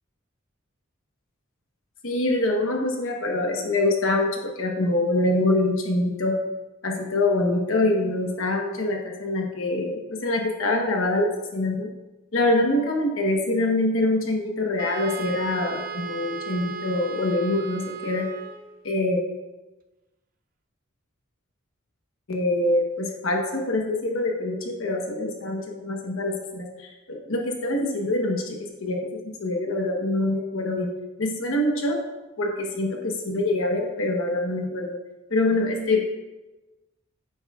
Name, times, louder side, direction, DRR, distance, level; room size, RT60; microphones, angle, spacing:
voice 1, 2.0-6.4 6.8-11.9 12.3-18.3 18.8-19.2 22.3-30.9 31.2-32.0 32.4-35.0 35.3-36.1, left 2 dB, 70° left, 1 dB, 1.1 m, -25 dB
Wind instrument woodwind instrument, 14.8-18.8, right 7 dB, 45° right, 0.6 m, -36 dB
9.5 x 8.8 x 2.4 m, 1.1 s
head